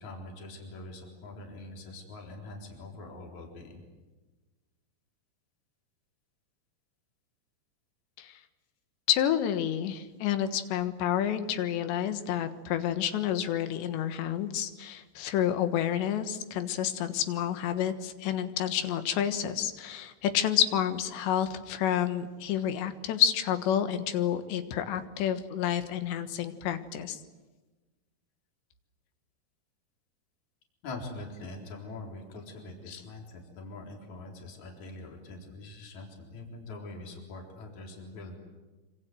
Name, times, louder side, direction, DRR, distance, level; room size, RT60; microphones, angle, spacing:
voice 1, 0.0-3.8 30.8-38.4, left 2 dB, 45° left, 1 dB, 5.0 m, -43 dB
voice 2, 9.1-27.2 32.9-33.0, left 10 dB, 85° left, 9 dB, 3.6 m, -29 dB
26.0 x 25.5 x 7.8 m, 1.2 s
omnidirectional pair, 4.9 m